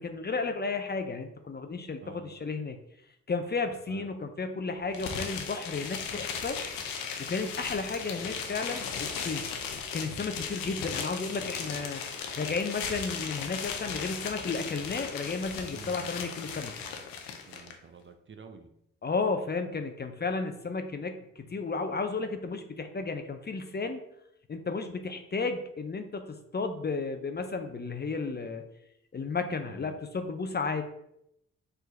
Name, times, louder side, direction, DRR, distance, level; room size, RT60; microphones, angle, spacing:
voice 1, 0.0-2.8 3.3-6.6 7.0-9.5 9.9-12.0 12.4-16.7 19.0-24.0 24.5-28.6 29.1-30.8, left 4 dB, 30° left, 7 dB, 0.6 m, -33 dB
voice 2, 2.0-2.3 3.9-4.1 15.7-16.1 17.5-18.7 29.7-29.9, right 5 dB, 35° right, 7 dB, 0.6 m, -49 dB
sound 1, 4.9-17.7, left 6 dB, 85° left, 0.7 m, -37 dB
4.5 x 2.6 x 4.4 m, 0.78 s
hypercardioid pair, 45°, 33 cm